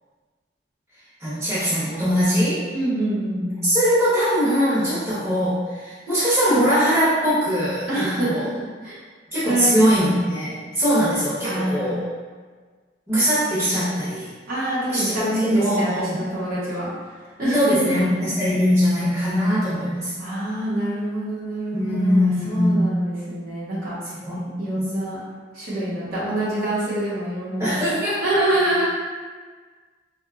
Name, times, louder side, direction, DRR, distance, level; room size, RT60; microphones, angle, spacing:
voice 1, 1.2-2.6 3.6-8.5 9.3-12.1 13.1-14.3 14.9-16.2 17.5-20.1 21.7-23.0 24.2-24.4 24.7-24.9 27.6-28.2, equal, 15° right, -12 dB, 0.8 m, -21 dB
voice 2, 2.7-3.7 7.9-9.0 9.4-10.1 11.4-12.0 14.5-16.9 17.4-17.9 20.2-23.9 24.3-25.2 25.5-27.8 28.2-28.9, right 1 dB, 50° right, -9 dB, 1.0 m, -25 dB
3.8 x 2.3 x 2.4 m, 1.5 s
head